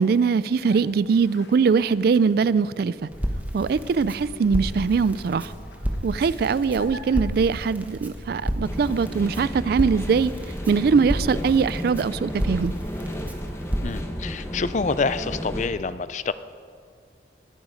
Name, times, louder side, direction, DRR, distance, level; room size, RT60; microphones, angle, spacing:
voice 1, 0.0-2.9 3.5-5.5 6.0-10.3 10.7-12.7, right 5 dB, 60° right, 18 dB, 0.3 m, -22 dB
sound 1, 0.6-7.9, left 2 dB, 80° left, 1.2 m, -47 dB
Crackle, 3.1-14.0, equal, 10° right, 1.2 m, -32 dB
sound 2, 8.6-15.7, equal, 15° left, 1.0 m, -33 dB
voice 2, 13.8-16.3, left 4 dB, 40° left, 14 dB, 0.4 m, -27 dB
20.5 x 8.9 x 5.2 m, 2.2 s
head